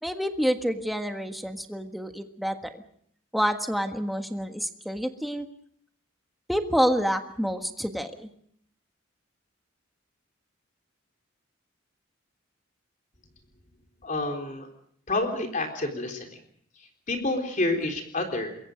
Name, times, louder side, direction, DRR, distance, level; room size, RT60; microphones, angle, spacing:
voice 1, 0.0-2.7 3.3-5.5 6.5-8.3, equal, ahead, 5 dB, 1.5 m, -28 dB
voice 2, 14.0-14.7 15.1-16.4 17.1-18.6, left 2 dB, 40° left, 4 dB, 3.8 m, -28 dB
27.0 x 22.5 x 5.1 m, 0.64 s
head